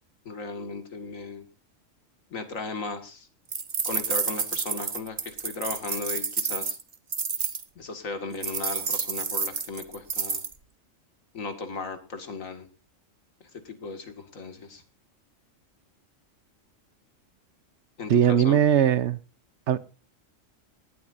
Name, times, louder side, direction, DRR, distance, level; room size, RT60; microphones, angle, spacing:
voice 1, 0.3-1.5 2.3-3.3 3.8-6.8 7.8-10.4 11.3-12.7 13.6-14.8 18.0-18.6, left 4 dB, 85° left, 2.3 m, -36 dB
sound 1, 3.5-7.6 8.4-10.5, right 5 dB, 40° right, 1.1 m, -29 dB
voice 2, 18.1-19.2 19.7-19.8, right 9 dB, 65° right, 1.0 m, -20 dB
19.0 x 11.5 x 2.6 m
omnidirectional pair, 1.3 m